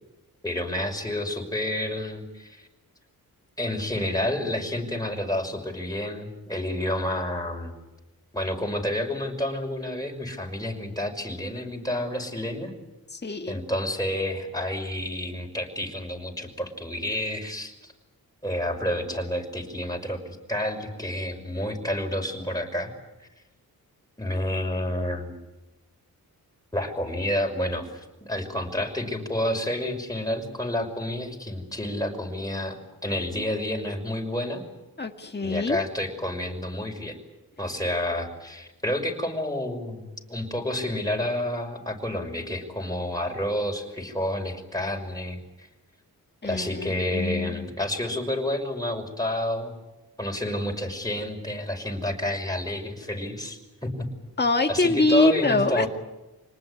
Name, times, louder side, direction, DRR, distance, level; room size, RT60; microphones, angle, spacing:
voice 1, 0.4-2.7 3.6-7.7 8.3-12.7 13.5-17.7 18.4-22.9 24.2-25.4 26.7-34.6 35.4-37.1 37.6-45.7 46.4-49.8 50.2-54.1 54.7-55.9, left 1 dB, 10° left, 2 dB, 6.0 m, -29 dB
voice 2, 13.1-13.6 35.0-35.8 46.4-47.7 54.4-55.9, left 2 dB, 25° left, 4 dB, 1.9 m, -24 dB
26.0 x 19.5 x 9.7 m, 1.0 s
cardioid pair, 75°, 37 cm